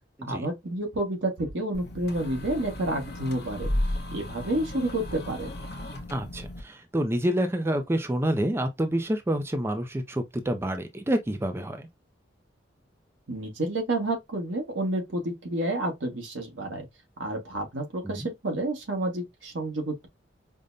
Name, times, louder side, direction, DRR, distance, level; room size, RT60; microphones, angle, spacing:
voice 1, 0.3-3.7 4.1-5.5 13.3-16.9 17.2-20.1, right 1 dB, 90° right, 1.2 m, -30 dB
sound 1, 1.7-6.6, left 1 dB, 55° left, 0.8 m, -34 dB
voice 2, 6.1-11.9 18.0-18.3, right 1 dB, 15° right, 0.4 m, -28 dB
5.1 x 2.1 x 2.5 m
head